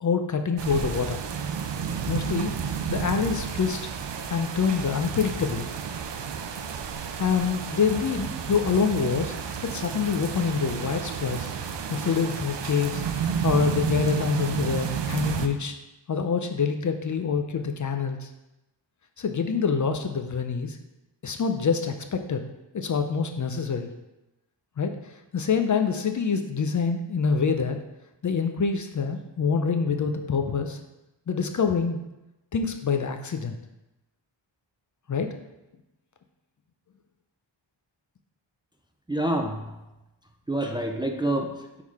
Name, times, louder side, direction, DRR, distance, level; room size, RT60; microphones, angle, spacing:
voice 1, 0.0-1.2 2.1-3.8 4.3-5.7 7.2-9.3 9.6-11.5 11.9-15.7 16.1-18.3 19.2-20.8 21.2-22.4 22.7-23.9 24.8-25.0 25.3-27.8 28.2-30.8 31.3-32.0 32.5-33.5 35.1-35.3, left 5 dB, 45° left, 6 dB, 0.5 m, -26 dB
sound 1, 0.6-15.5, right 7 dB, 70° right, 0.6 m, -31 dB
voice 2, 39.1-39.8 40.5-41.8, right 1 dB, 10° right, 3 dB, 0.4 m, -28 dB
6.4 x 3.7 x 4.7 m, 0.97 s
wide cardioid pair, 125°, 44 cm